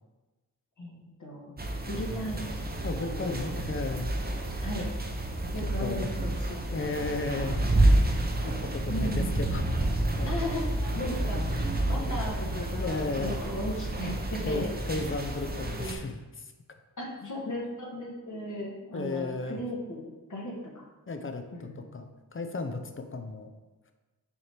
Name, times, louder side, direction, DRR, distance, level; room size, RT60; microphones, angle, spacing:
voice 1, 0.8-1.5 1.9-2.6 2.9-3.5 4.6-4.9 5.5-7.6 8.9-9.3 10.3-14.7 17.0-20.8 21.5-21.8, left 1 dB, 55° left, -2 dB, 1.3 m, -37 dB
sound 1, 1.6-15.9, right 1 dB, 25° right, 0.7 m, -29 dB
voice 2, 2.8-4.1 5.4-5.5 5.8-6.1 6.7-8.1 8.4-9.7 10.1-10.4 11.4-11.6 12.8-13.4 14.0-14.2 14.5-16.5 18.9-19.6 21.1-23.5, left 3 dB, 35° left, 6 dB, 0.6 m, -35 dB
7.0 x 4.4 x 3.4 m, 1.2 s
wide cardioid pair, 115°, 37 cm